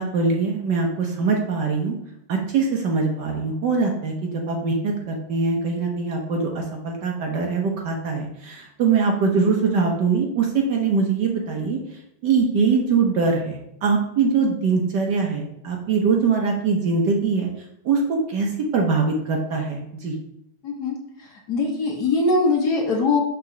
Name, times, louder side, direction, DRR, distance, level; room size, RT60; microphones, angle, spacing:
voice 1, 0.0-2.0 2.3-11.8 12.2-17.5 17.8-20.1, right 4 dB, 60° right, 1 dB, 1.3 m, -22 dB
voice 2, 20.6-20.9 21.5-23.2, left 3 dB, 55° left, 0 dB, 1.3 m, -21 dB
6.0 x 3.7 x 6.0 m, 0.80 s
omnidirectional pair, 2.4 m